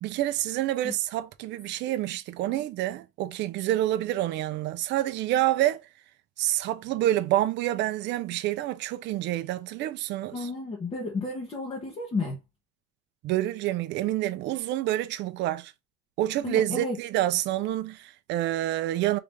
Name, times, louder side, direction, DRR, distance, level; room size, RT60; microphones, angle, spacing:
voice 1, 0.0-5.8 6.4-10.5 13.2-15.7 16.2-19.2, right 14 dB, 40° right, 0.4 m, -28 dB
voice 2, 10.3-12.4 16.4-17.0, left 3 dB, 20° left, 0.8 m, -32 dB
3.8 x 3.3 x 3.4 m
cardioid pair, 175°, 30 cm